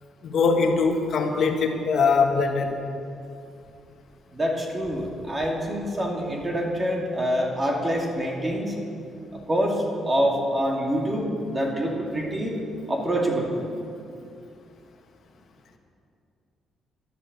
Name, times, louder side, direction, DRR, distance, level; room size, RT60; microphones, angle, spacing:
voice 1, 0.2-2.8, left 4 dB, 60° left, 4 dB, 1.6 m, -22 dB
voice 2, 4.3-8.7 9.3-12.5 12.9-13.5, equal, 25° right, -1 dB, 2.5 m, -26 dB
12.5 x 11.5 x 7.0 m, 2.5 s
cardioid pair, 90°, 0 cm